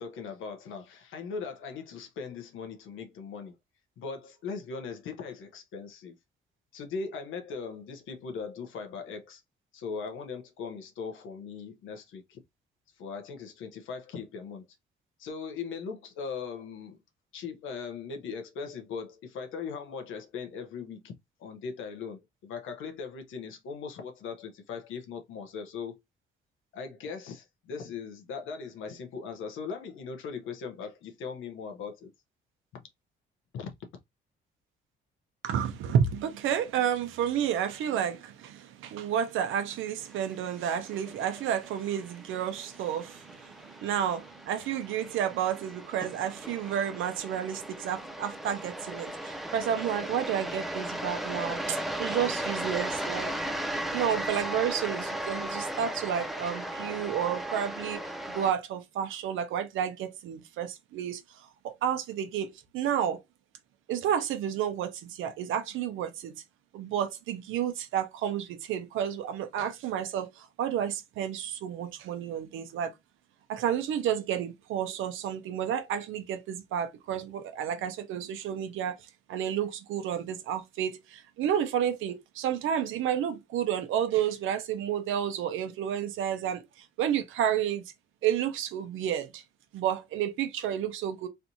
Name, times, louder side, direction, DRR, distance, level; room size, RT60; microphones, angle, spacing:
voice 1, 0.0-3.5 4.0-6.2 6.7-9.4 9.7-12.4 13.0-14.7 15.2-17.0 17.3-26.0 26.7-32.1 33.5-33.9, left 5 dB, 85° left, 1.0 m, -39 dB
voice 2, 35.4-53.3 53.8-63.2 63.9-66.3 66.7-72.9 73.5-87.8 88.2-89.4 89.7-91.3, right 9 dB, 85° right, 0.7 m, -31 dB
sound 1, 40.2-58.5, right 1 dB, ahead, 0.5 m, -36 dB
3.3 x 2.6 x 2.8 m
cardioid pair, 90°, 20 cm